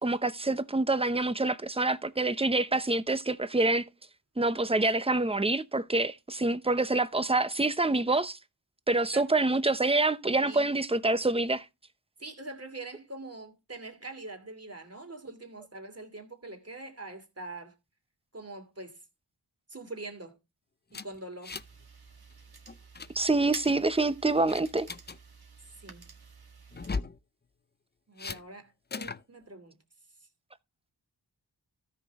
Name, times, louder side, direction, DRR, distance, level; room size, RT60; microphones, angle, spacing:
voice 1, 0.0-3.8 4.4-8.4 8.9-11.6 23.1-24.9, right 2 dB, 15° right, 0.8 m, -26 dB
voice 2, 10.4-10.7 12.2-17.7 18.3-19.0 19.7-20.4 20.9-21.6 25.8-26.0 28.1-28.7 29.0-29.8, right 2 dB, 35° right, 2.8 m, -43 dB
sound 1, 20.9-21.8 22.1-22.3 22.7-23.1 23.6-24.0 24.5-25.2 26.7-27.2 28.2-28.4 28.9-29.2, left 4 dB, 25° left, 0.5 m, -37 dB
sound 2, 21.5-27.0, right 4 dB, 60° right, 1.9 m, -50 dB
13.5 x 6.2 x 3.6 m
wide cardioid pair, 50°, 41 cm